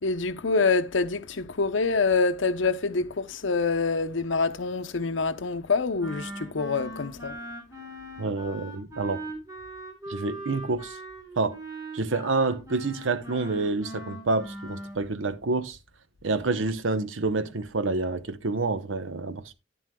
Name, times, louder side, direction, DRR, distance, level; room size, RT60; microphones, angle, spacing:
voice 1, 0.0-7.4, left 4 dB, 70° left, 0.7 m, -26 dB
Wind instrument woodwind instrument, 6.0-15.0, right 1 dB, 20° right, 3.9 m, -40 dB
voice 2, 8.2-9.2 10.1-11.0 11.4-11.6 11.9-15.8 16.2-19.5, right 3 dB, 80° right, 0.8 m, -28 dB
11.0 x 10.5 x 2.2 m
head